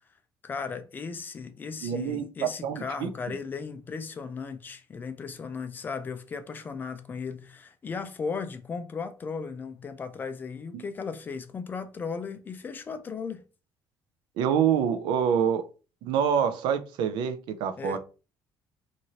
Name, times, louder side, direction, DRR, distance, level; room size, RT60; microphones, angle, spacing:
voice 1, 0.4-13.4 17.8-18.0, left 5 dB, 25° left, 0.3 m, -36 dB
voice 2, 1.8-2.3 2.6-3.1 14.4-15.7 16.0-18.0, right 8 dB, 75° right, 0.4 m, -26 dB
3.0 x 2.6 x 2.7 m
cardioid pair, 150°, 8 cm